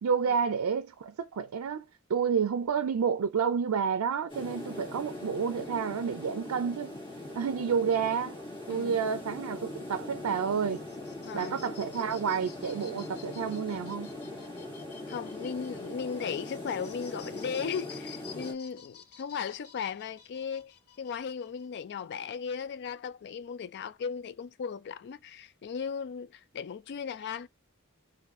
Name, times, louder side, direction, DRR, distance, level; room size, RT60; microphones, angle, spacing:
voice 1, 0.0-1.8 2.1-6.9 7.3-8.4 8.7-10.8 11.3-14.1, right 6 dB, 85° right, 0.4 m, -30 dB
sound 1, 4.3-18.5, left 2 dB, 25° left, 2.0 m, -41 dB
voice 2, 8.7-9.0 11.3-11.6 15.1-27.5, left 6 dB, 50° left, 0.4 m, -37 dB
sound 2, 10.5-21.8, left 7 dB, 85° left, 1.0 m, -53 dB
4.0 x 2.5 x 3.6 m
head